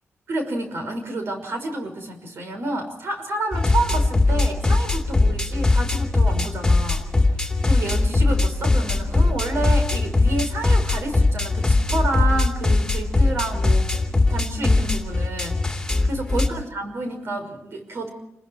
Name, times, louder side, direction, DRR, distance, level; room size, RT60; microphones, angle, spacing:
voice 1, 0.3-13.9 14.3-18.1, right 2 dB, 55° right, 6 dB, 5.7 m, -29 dB
sound 1, 3.5-16.5, left 2 dB, 10° left, 2.6 m, -20 dB
29.0 x 21.0 x 4.7 m, 0.81 s
wide cardioid pair, 175°, 5 cm